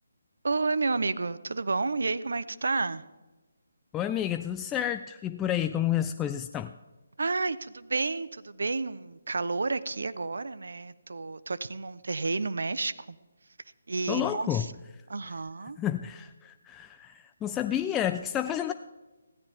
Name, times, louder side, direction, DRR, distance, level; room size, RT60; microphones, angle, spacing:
voice 1, 0.4-3.0 7.2-13.2 13.9-14.7 15.1-15.8, right 3 dB, 75° right, 15 dB, 0.8 m, -30 dB
voice 2, 3.9-6.7 14.1-14.7 15.8-18.7, left 11 dB, 10° left, 8 dB, 0.3 m, -30 dB
16.0 x 14.0 x 3.6 m, 1.2 s
hypercardioid pair, 160°, 0 cm